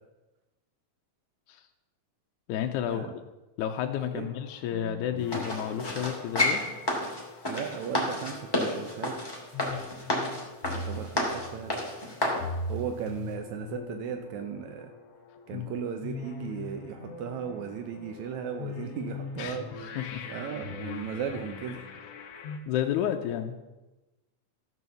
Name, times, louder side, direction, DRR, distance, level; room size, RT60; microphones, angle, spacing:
voice 1, 2.5-3.1 3.6-6.6 15.5-15.8 19.4-19.6 20.0-20.2 22.7-23.6, left 10 dB, 80° left, 4 dB, 2.1 m, -31 dB
sound 1, 4.2-22.6, left 3 dB, 60° left, 2.1 m, -41 dB
sound 2, 5.3-12.4 13.0-13.1, left 1 dB, 10° left, 2.1 m, -30 dB
voice 2, 7.5-9.2 10.7-11.7 12.7-14.9 15.5-19.7 20.3-21.8, right 7 dB, 75° right, 5 dB, 2.1 m, -36 dB
14.0 x 6.3 x 6.9 m, 1.1 s
omnidirectional pair, 3.4 m